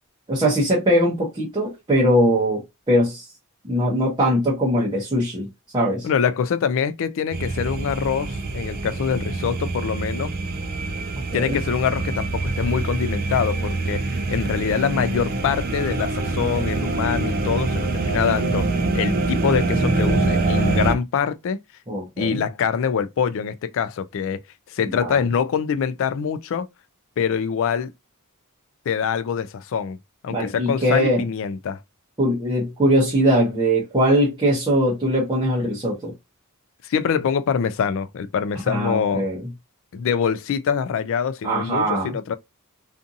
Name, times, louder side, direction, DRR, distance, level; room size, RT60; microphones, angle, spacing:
voice 1, 0.3-3.3 3.6-6.1 11.3-11.6 21.9-22.4 24.9-25.2 30.3-31.2 32.2-36.1 38.7-39.4 41.4-42.1, equal, 20° right, 0.7 m, -21 dB
voice 2, 6.0-10.3 11.3-18.7 18.9-21.6 22.2-24.4 24.7-26.7 27.2-27.9 28.9-30.0 30.2-31.8 36.8-39.3 39.9-42.4, left 7 dB, 60° left, 0.3 m, -24 dB
sound 1, 7.3-20.9, right 2 dB, 45° right, 0.4 m, -25 dB
2.5 x 2.5 x 2.6 m
head